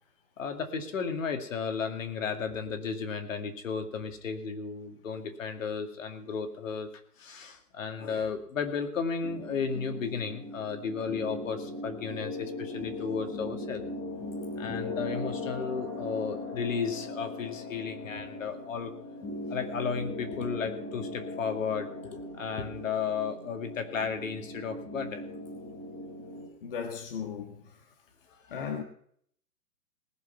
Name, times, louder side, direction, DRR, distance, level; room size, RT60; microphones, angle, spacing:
voice 1, 0.4-6.9 7.2-13.8 14.6-18.9 19.5-25.2, left 5 dB, 50° left, 2.4 m, -34 dB
sound 1, 9.2-26.5, left 2 dB, 5° left, 0.9 m, -39 dB
voice 2, 26.6-27.7 28.5-28.8, left 7 dB, 35° left, 1.5 m, -36 dB
20.0 x 7.1 x 5.8 m
hypercardioid pair, 170°, 48 cm